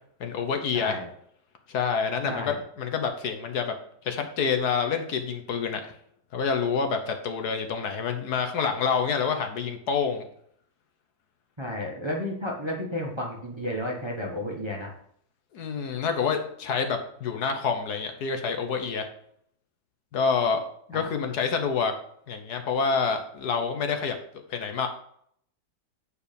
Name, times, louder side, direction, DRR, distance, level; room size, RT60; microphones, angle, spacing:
voice 1, 0.2-1.0 1.7-3.7 4.0-5.9 6.3-10.3 15.5-19.1 20.1-21.9 22.3-24.2 24.5-24.9, left 5 dB, 65° left, 6 dB, 1.4 m, -27 dB
voice 2, 2.2-2.6 11.6-14.9 20.9-21.1, left 1 dB, 20° right, -1 dB, 1.2 m, -32 dB
8.6 x 4.8 x 5.2 m, 0.66 s
omnidirectional pair, 1.8 m